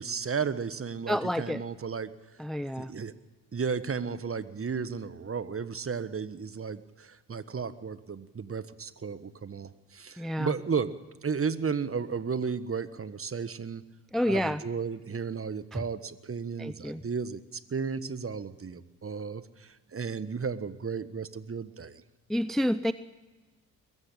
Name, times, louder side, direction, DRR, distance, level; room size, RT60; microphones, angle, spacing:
voice 1, 0.0-2.1 2.8-3.1 3.5-10.9 11.2-13.8 14.3-22.0, right 5 dB, 30° right, 14 dB, 1.4 m, -34 dB
voice 2, 1.1-1.6 2.4-2.9 10.2-10.5 14.1-14.6 15.7-15.8 16.6-17.0 22.3-22.9, equal, ahead, 14 dB, 0.6 m, -29 dB
22.5 x 14.0 x 8.5 m, 1.2 s
hypercardioid pair, 50°, 47 cm